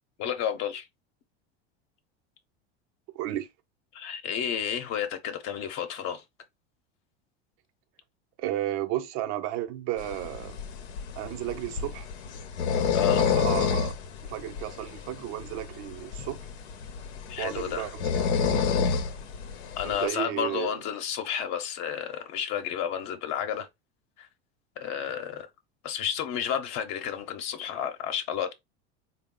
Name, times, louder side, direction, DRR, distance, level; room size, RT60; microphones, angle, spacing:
voice 1, 0.2-0.9 3.9-6.2 12.9-13.2 17.3-17.9 19.8-23.7 24.2-24.3 24.8-25.5 25.8-28.5, left 9 dB, 55° left, 0.9 m, -31 dB
voice 2, 3.1-3.5 8.4-10.6 11.2-12.1 13.1-13.9 14.3-16.4 17.4-18.1 18.4-18.7 19.8-20.8, right 13 dB, 60° right, 0.8 m, -33 dB
sound 1, 10.0-20.1, left 6 dB, 85° left, 0.8 m, -29 dB
3.6 x 2.3 x 3.7 m
supercardioid pair, 110°, 32 cm